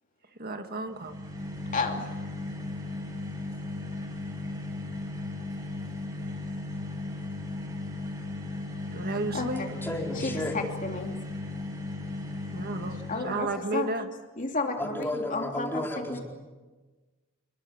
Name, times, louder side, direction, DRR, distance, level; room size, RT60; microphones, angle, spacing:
voice 1, 0.4-1.2 8.9-9.7 12.5-14.1, right 2 dB, 45° right, 6 dB, 1.7 m, -32 dB
sound 1, 0.9-13.5, left 2 dB, 20° right, 6.3 m, -36 dB
voice 2, 1.7-2.0 9.3-9.7 10.2-11.1 13.1-13.5 13.7-13.9 14.4-15.8 16.1-16.2, left 3 dB, 40° left, 3 dB, 3.0 m, -32 dB
voice 3, 9.8-10.6 14.8-16.2, left 1 dB, 10° left, 0 dB, 4.5 m, -33 dB
27.5 x 22.5 x 8.8 m, 1.3 s
head